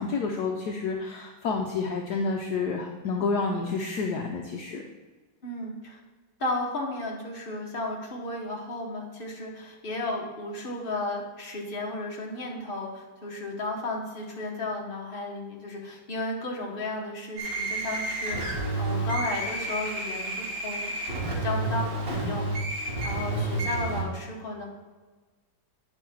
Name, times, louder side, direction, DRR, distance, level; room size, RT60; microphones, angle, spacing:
voice 1, 0.0-4.8, left 4 dB, 65° left, 1 dB, 1.2 m, -29 dB
voice 2, 5.4-6.0 6.4-20.9 21.4-22.5 23.0-24.6, left 2 dB, 30° left, -2 dB, 1.5 m, -34 dB
sound 1, 17.4-24.0, right 2 dB, 50° right, 2.3 m, -30 dB
9.7 x 5.5 x 4.6 m, 1.3 s
omnidirectional pair, 2.0 m